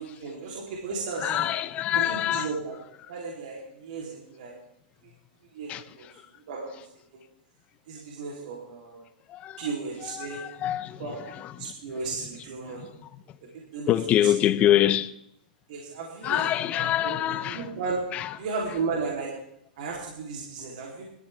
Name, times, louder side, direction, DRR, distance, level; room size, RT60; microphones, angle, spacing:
voice 1, 0.0-1.5 1.9-4.5 5.5-6.1 6.5-6.9 7.9-9.0 9.6-10.4 11.0-11.3 11.6-12.9 13.7-13.9 14.2-14.3 14.6-14.8 15.7-18.0 18.4-19.3 19.8-21.1, right 4 dB, 65° right, 3.5 m, -34 dB
voice 2, 1.2-2.5 5.7-5.8 9.3-9.6 10.2-11.0 13.9-15.1 16.2-17.6 18.1-18.3, left 12 dB, 25° left, 0.6 m, -24 dB
19.5 x 13.5 x 3.6 m
supercardioid pair, 150°, 5 cm